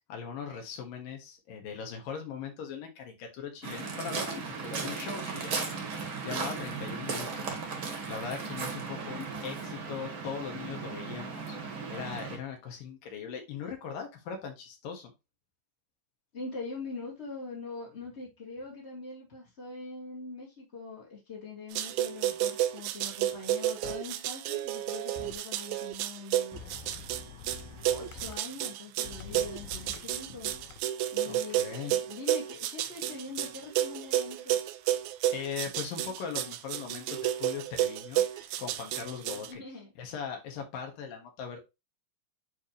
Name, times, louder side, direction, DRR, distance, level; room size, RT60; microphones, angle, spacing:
voice 1, 0.1-5.7 6.2-7.6 8.1-15.1 31.3-31.9 35.2-39.6 40.0-41.6, left 6 dB, 70° left, 3 dB, 3.2 m, -40 dB
Waves surf, 3.6-12.4, right 5 dB, 45° right, 1.8 m, -36 dB
voice 2, 8.9-9.3 16.3-26.6 27.8-30.5 31.1-34.6 39.5-39.9, left 3 dB, 30° left, -4 dB, 1.4 m, -43 dB
sound 1, 21.8-39.5, right 12 dB, 85° right, 2.4 m, -31 dB
sound 2, 23.8-23.9 25.2-25.4 26.5-28.4 29.0-30.8, left 7 dB, 90° left, 2.6 m, -46 dB
9.6 x 3.5 x 3.1 m, 0.23 s
omnidirectional pair, 4.3 m